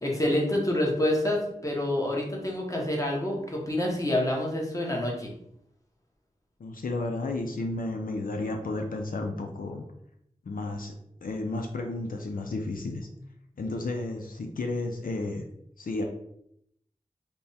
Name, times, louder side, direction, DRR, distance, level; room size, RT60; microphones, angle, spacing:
voice 1, 0.0-5.3, left 1 dB, 25° left, -2 dB, 1.0 m, -27 dB
voice 2, 6.6-9.8 10.4-13.1 13.6-15.4 15.8-16.0, left 2 dB, 85° left, 3 dB, 0.5 m, -32 dB
3.4 x 2.2 x 4.1 m, 0.73 s
wide cardioid pair, 60°, 14 cm